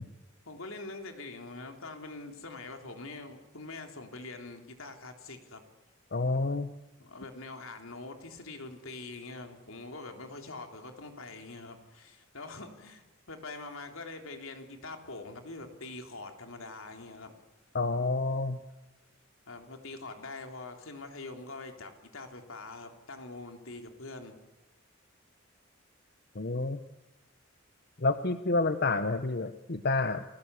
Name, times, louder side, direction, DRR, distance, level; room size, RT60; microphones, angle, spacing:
voice 1, 0.4-5.6 7.0-17.3 19.5-24.3, left 3 dB, 80° left, 5 dB, 3.5 m, -44 dB
voice 2, 6.1-6.7 17.7-18.6 26.3-26.8 28.0-30.2, left 3 dB, 50° left, 10 dB, 0.9 m, -29 dB
28.5 x 19.5 x 8.3 m, 1.1 s
head